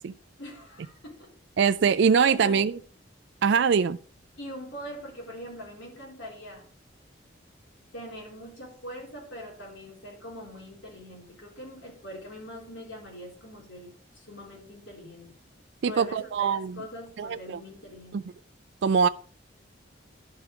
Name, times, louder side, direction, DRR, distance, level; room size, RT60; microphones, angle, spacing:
voice 1, 0.4-1.3 2.2-2.7 4.4-6.6 7.9-15.3 15.8-18.2, equal, 85° left, 4.1 m, -42 dB
voice 2, 1.6-2.8 3.4-4.0 15.8-16.8 17.2-17.6 18.1-18.2 18.8-19.1, right 6 dB, 65° right, 0.3 m, -23 dB
11.5 x 5.3 x 4.7 m
head